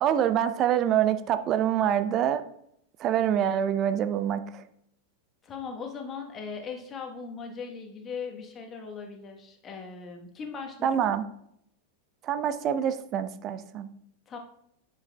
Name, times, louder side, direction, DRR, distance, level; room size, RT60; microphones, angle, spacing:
voice 1, 0.0-2.4 3.0-4.6 10.8-11.2 12.2-13.9, right 9 dB, 35° right, 11 dB, 0.5 m, -26 dB
voice 2, 5.4-11.1 14.3-14.4, left 5 dB, 25° left, 3 dB, 1.2 m, -39 dB
9.8 x 6.8 x 2.3 m, 0.74 s
figure-of-eight pair, 90°, 0 cm